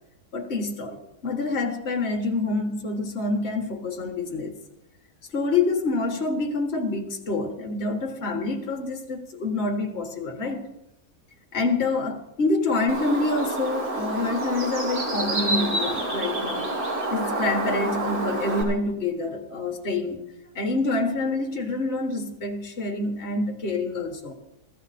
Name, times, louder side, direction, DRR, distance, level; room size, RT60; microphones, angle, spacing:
voice 1, 0.3-4.6 5.3-10.6 11.5-16.7 17.1-20.2 20.5-24.3, left 3 dB, 40° left, 2 dB, 1.7 m, -27 dB
Bird, 12.9-18.6, right 1 dB, 85° right, 3.4 m, -28 dB
15.0 x 14.0 x 4.2 m, 0.86 s
omnidirectional pair, 1.7 m